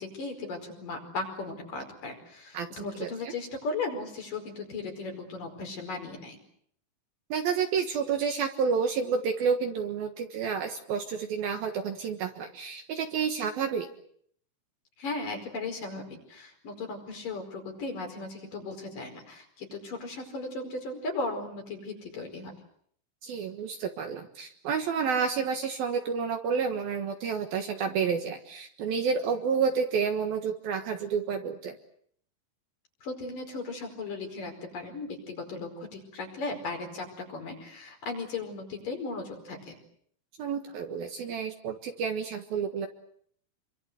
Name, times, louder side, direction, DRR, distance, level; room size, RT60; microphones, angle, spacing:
voice 1, 0.0-6.4 15.0-22.5 33.0-39.8, left 3 dB, 45° left, 3 dB, 6.3 m, -37 dB
voice 2, 3.0-3.3 7.3-13.9 23.2-31.8 40.4-42.9, right 6 dB, 65° right, 6 dB, 2.9 m, -30 dB
28.0 x 24.0 x 8.0 m, 0.65 s
omnidirectional pair, 5.3 m